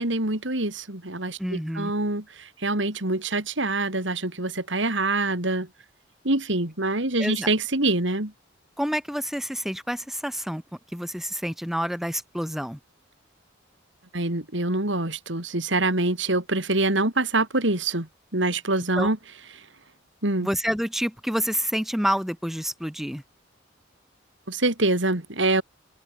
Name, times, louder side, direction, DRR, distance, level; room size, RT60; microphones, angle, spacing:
voice 1, 0.0-5.7 6.2-8.3 14.1-19.2 20.2-20.5 24.5-25.6, right 2 dB, 70° right, 3.7 m, -25 dB
voice 2, 1.4-1.9 7.2-7.5 8.8-10.6 10.9-12.8 19.0-19.1 20.4-23.2, equal, ahead, 2.0 m, -28 dB
open air
head